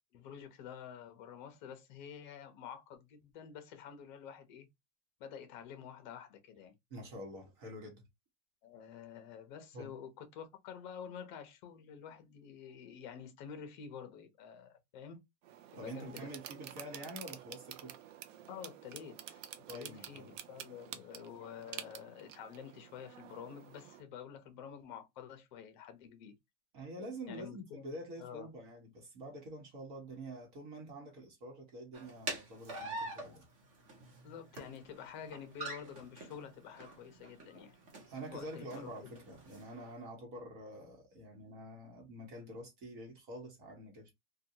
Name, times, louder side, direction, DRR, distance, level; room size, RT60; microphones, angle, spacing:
voice 1, 0.1-4.7 5.2-6.7 8.6-15.2 15.7-16.3 18.5-19.4 19.7-26.3 27.3-28.5 34.2-37.7 38.3-39.2, left 8 dB, 40° left, 0.6 m, -49 dB
voice 2, 6.9-8.0 9.7-9.9 15.7-18.0 19.7-20.4 20.9-21.0 26.7-33.4 38.1-44.1, right 1 dB, 40° right, 1.1 m, -47 dB
sound 1, 15.4-24.0, right 10 dB, 90° right, 0.6 m, -50 dB
sound 2, 31.9-39.9, right 2 dB, 20° right, 0.6 m, -46 dB
2.7 x 2.3 x 2.7 m
supercardioid pair, 170°, 37 cm